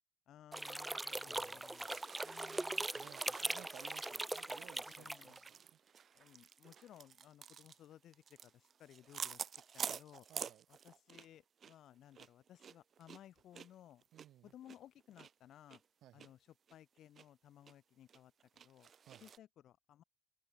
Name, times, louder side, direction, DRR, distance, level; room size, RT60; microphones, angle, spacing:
voice 1, 0.3-3.5 4.8-5.4 6.1-10.3 10.7-14.0 14.4-15.8 16.1-18.9 19.2-20.0, left 11 dB, 60° left, 3.8 m, -60 dB
sound 1, 0.5-5.5, right 2 dB, 10° right, 1.0 m, -41 dB
sound 2, 1.1-11.4 11.6-11.8 12.1-15.3 15.7-15.8 16.2-16.3 16.7-17.3 17.7-17.8 18.1-19.4, right 7 dB, 40° right, 2.7 m, -49 dB
voice 2, 1.3-1.6 3.0-5.5 10.3-10.6 14.1-14.5 16.0-16.3 19.1-19.2, right 13 dB, 65° right, 5.8 m, -59 dB
open air
cardioid pair, 110°, 0 cm